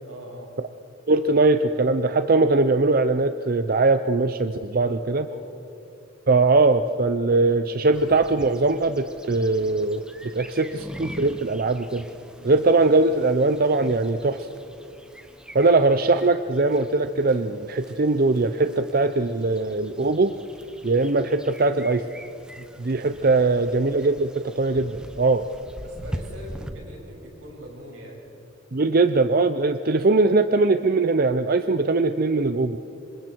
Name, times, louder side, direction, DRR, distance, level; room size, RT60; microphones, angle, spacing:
voice 1, 0.0-0.5 4.7-5.6 12.3-12.6 15.6-15.9 23.3-23.6 25.8-28.3, right 1 dB, 85° right, -1 dB, 6.5 m, -42 dB
voice 2, 1.1-5.3 6.3-12.0 12.4-14.5 15.5-20.3 20.8-22.1 22.8-25.5 28.7-32.8, right 3 dB, 45° right, 10 dB, 0.6 m, -21 dB
sound 1, 7.9-26.7, equal, 5° right, 1.1 m, -43 dB
27.0 x 25.5 x 4.5 m, 2.8 s
head